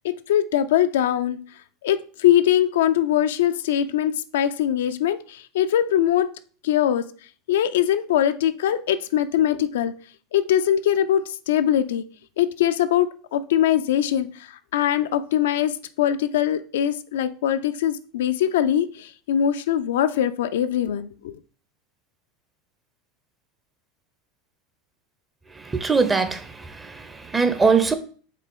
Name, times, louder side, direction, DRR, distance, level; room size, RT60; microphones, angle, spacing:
voice 1, 0.0-1.4 1.8-6.3 6.6-7.1 7.5-9.9 10.3-12.0 12.4-21.4, left 10 dB, 70° left, 0.4 m, -22 dB
voice 2, 25.6-27.9, right 4 dB, 20° right, 0.8 m, -22 dB
6.6 x 3.9 x 3.7 m
figure-of-eight pair, 80°, 0 cm